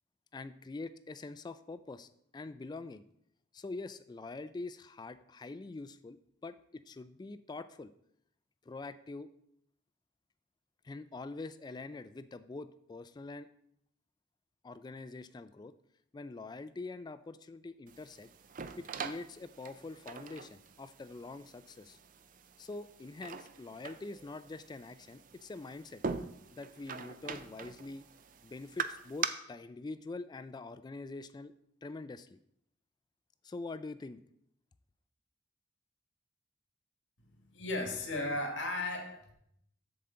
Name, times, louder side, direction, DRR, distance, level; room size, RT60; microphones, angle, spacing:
voice 1, 0.3-3.0 3.5-7.9 8.7-9.3 10.8-13.5 14.6-15.7 16.1-18.3 18.8-22.0 22.6-26.0 26.5-28.0 28.4-31.5 31.8-32.4 33.4-34.2, left 3 dB, 25° left, 13 dB, 0.3 m, -44 dB
sound 1, 17.9-29.3, right 6 dB, 45° right, 0.5 m, -43 dB
voice 2, 37.2-39.3, left 2 dB, 75° left, 3 dB, 1.7 m, -36 dB
7.8 x 6.9 x 3.8 m, 0.72 s
head